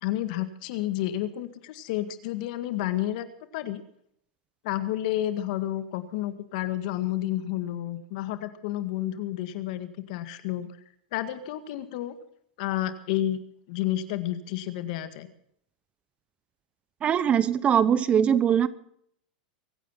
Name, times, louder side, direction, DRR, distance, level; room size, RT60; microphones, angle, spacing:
voice 1, 0.0-3.3 3.5-3.8 4.6-10.7 11.1-12.1 12.6-13.4 13.7-15.3, left 13 dB, 60° left, 10 dB, 1.9 m, -30 dB
voice 2, 17.0-18.7, right 8 dB, 25° right, 17 dB, 0.8 m, -21 dB
23.5 x 9.4 x 5.9 m, 0.67 s
supercardioid pair, 130°, 5 cm